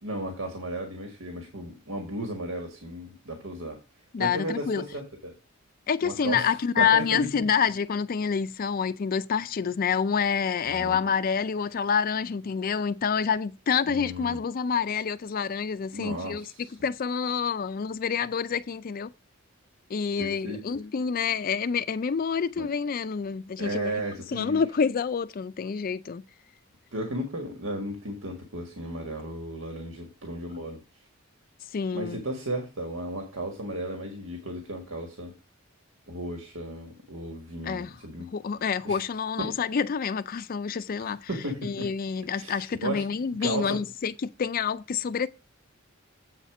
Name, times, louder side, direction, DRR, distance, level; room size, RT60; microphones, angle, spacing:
voice 1, 0.0-3.8 4.2-5.3 6.0-7.4 10.6-11.0 13.8-14.4 15.9-16.7 20.2-20.6 22.6-22.7 23.6-24.6 26.9-30.8 31.9-35.3 36.1-38.3 38.8-39.0 39.4-39.5 41.0-41.9 42.3-43.0 43.4-43.8, right 1 dB, 80° right, 1.7 m, -34 dB
voice 2, 4.1-4.8 5.9-16.5 16.8-19.1 19.9-24.0 24.3-26.2 31.7-32.2 37.6-38.0 38.3-41.3 41.6-45.3, left 6 dB, 45° left, 0.4 m, -27 dB
8.0 x 4.2 x 5.9 m
head